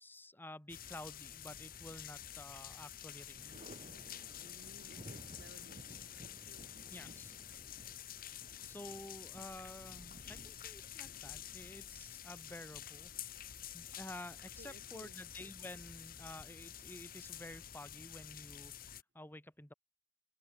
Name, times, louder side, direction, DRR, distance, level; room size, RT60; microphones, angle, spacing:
voice 1, 0.0-3.5 6.9-7.3 8.7-13.1 13.7-18.7 19.1-19.7, left 1 dB, 10° left, 4.2 m, -51 dB
sound 1, 0.7-19.0, left 10 dB, 55° left, 2.4 m, -49 dB
Thunder, 1.7-2.5 2.8-12.4 13.9-14.8, right 1 dB, 40° right, 5.7 m, -57 dB
voice 2, 4.4-5.9 6.2-6.7 14.6-15.1, right 1 dB, 70° right, 5.3 m, -59 dB
open air
head